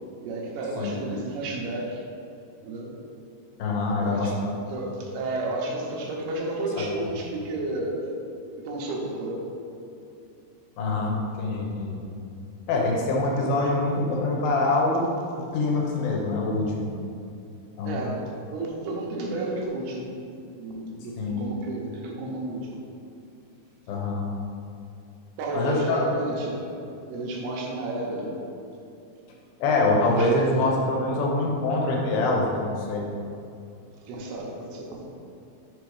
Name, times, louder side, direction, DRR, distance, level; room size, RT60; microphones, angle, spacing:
voice 1, 0.2-2.1 2.6-3.0 4.0-8.1 8.6-9.5 17.8-20.1 20.6-22.8 25.4-26.7 27.1-28.4 29.8-30.8 34.1-35.0, right 2 dB, 85° right, -1 dB, 3.0 m, -32 dB
voice 2, 3.6-4.5 10.8-12.0 12.7-15.1 15.4-16.9 17.8-18.1 21.2-21.4 23.9-24.3 25.5-26.1 29.6-33.1, left 2 dB, 75° left, -1 dB, 2.7 m, -25 dB
6.6 x 5.1 x 4.8 m, 2.5 s
omnidirectional pair, 4.4 m